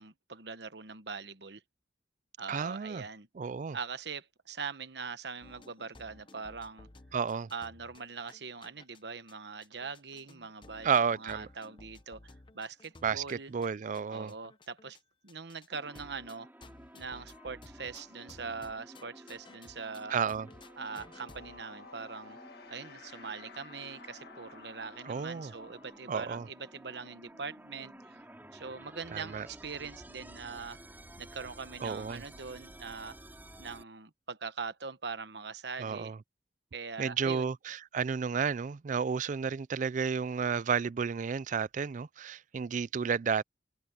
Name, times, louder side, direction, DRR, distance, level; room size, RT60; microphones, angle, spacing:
voice 1, 0.0-1.6 2.4-3.3 3.7-6.9 7.5-13.5 14.1-15.0 15.2-16.5 16.9-20.1 20.8-22.4 22.7-28.2 28.5-30.8 31.2-33.2 33.6-36.1 36.7-37.5, right 5 dB, 65° right, 1.2 m, -42 dB
voice 2, 2.5-3.0 3.4-3.8 7.1-7.5 10.8-11.5 13.0-14.3 20.1-20.5 25.1-25.5 26.1-26.5 29.1-29.5 31.8-32.2 35.8-36.2 37.0-43.4, right 6 dB, 45° right, 0.4 m, -32 dB
sound 1, 5.4-9.0 9.3-9.4 9.6-15.0 15.3-15.7 15.9-20.0 20.3-21.6, left 2 dB, 25° left, 0.8 m, -56 dB
sound 2, 15.7-33.8, right 1 dB, 10° right, 4.7 m, -53 dB
sound 3, 18.8-29.4, left 4 dB, 60° left, 1.8 m, -56 dB
open air
head